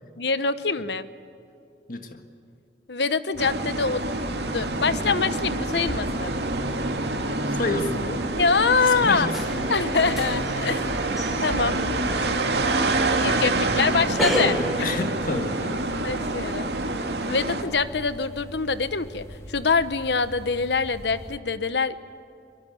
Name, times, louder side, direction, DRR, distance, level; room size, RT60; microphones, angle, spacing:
voice 1, 0.2-1.1 2.9-4.0 4.5-6.3 8.4-9.3 9.7-10.8 11.4-11.8 13.2-14.9 16.0-16.7 17.3-22.0, left 4 dB, 75° left, 13 dB, 1.0 m, -24 dB
voice 2, 1.9-2.2 7.5-8.3 8.8-9.6 10.1-10.2 14.8-16.1, left 2 dB, 50° left, 6 dB, 1.7 m, -30 dB
sound 1, 3.3-21.4, equal, 15° left, 1.5 m, -43 dB
sound 2, 3.4-17.6, right 2 dB, 65° right, 2.4 m, -27 dB
sound 3, 9.3-14.7, equal, ahead, 5.4 m, -32 dB
24.0 x 23.0 x 9.4 m, 2.6 s
head